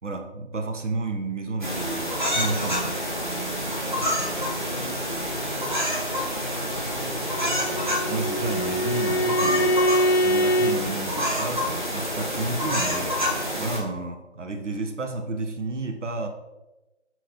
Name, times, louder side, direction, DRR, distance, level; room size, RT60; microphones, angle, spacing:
voice 1, 0.0-3.0 8.1-9.8 10.2-13.2 13.6-16.3, right 3 dB, 90° right, 5 dB, 0.8 m, -31 dB
sound 1, 1.6-13.8, equal, 40° right, 0.8 m, -28 dB
voice 2, 3.9-7.9, equal, 35° left, -7 dB, 1.2 m, -41 dB
Bowed string instrument, 7.3-10.8, equal, 60° left, 0.6 m, -24 dB
4.2 x 4.0 x 2.9 m, 1.1 s
figure-of-eight pair, 175°, 35 cm